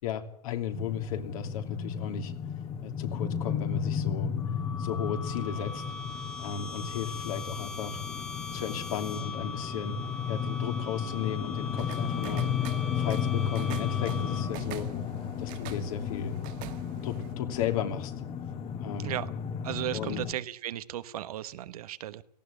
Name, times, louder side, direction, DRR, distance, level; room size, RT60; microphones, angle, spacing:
voice 1, 0.0-2.3 2.8-4.3 4.8-5.8 6.4-8.0 8.5-10.0 10.3-12.5 12.9-14.9 15.4-16.3 17.0-18.1 18.8-19.2 19.9-20.2, left 8 dB, 60° left, 5 dB, 2.9 m, -35 dB
sound 1, 0.7-20.3, left 7 dB, 30° left, 1.9 m, -34 dB
sound 2, 4.4-14.8, left 4 dB, 5° left, 1.6 m, -41 dB
sound 3, 11.8-17.3, right 14 dB, 40° right, 1.3 m, -45 dB
voice 2, 19.6-22.2, right 12 dB, 65° right, 13 dB, 1.2 m, -35 dB
18.0 x 16.0 x 10.0 m, 0.69 s
hypercardioid pair, 105°, 21 cm